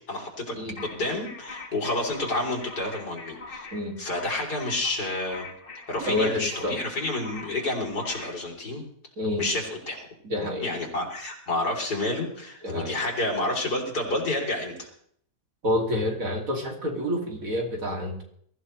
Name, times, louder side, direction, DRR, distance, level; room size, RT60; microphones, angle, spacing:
voice 1, 0.1-0.6 0.8-3.7 4.0-5.4 5.9-8.8 9.4-10.1 10.6-14.9, left 2 dB, 85° left, 0 dB, 4.1 m, -29 dB
sound 1, 0.8-8.4, left 3 dB, 35° left, 1.5 m, -43 dB
voice 2, 6.0-6.8 9.2-9.4 10.2-10.7 12.6-13.0 15.6-18.2, left 1 dB, 55° right, 1 dB, 3.0 m, -28 dB
22.0 x 14.5 x 3.3 m, 0.63 s
omnidirectional pair, 1.7 m